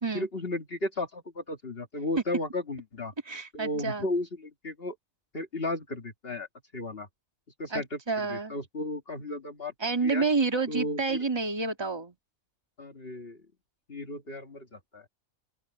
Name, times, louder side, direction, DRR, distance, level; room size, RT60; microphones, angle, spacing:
voice 1, 0.1-3.1 3.5-5.0 5.3-6.5 6.7-7.1 7.6-9.7 10.0-10.3 10.7-11.2 12.8-13.4 13.9-15.1, left 2 dB, 45° left, 2.1 m, -34 dB
voice 2, 3.3-4.1 7.7-8.5 9.8-12.1, right 4 dB, 20° right, 2.2 m, -29 dB
open air
omnidirectional pair, 1.4 m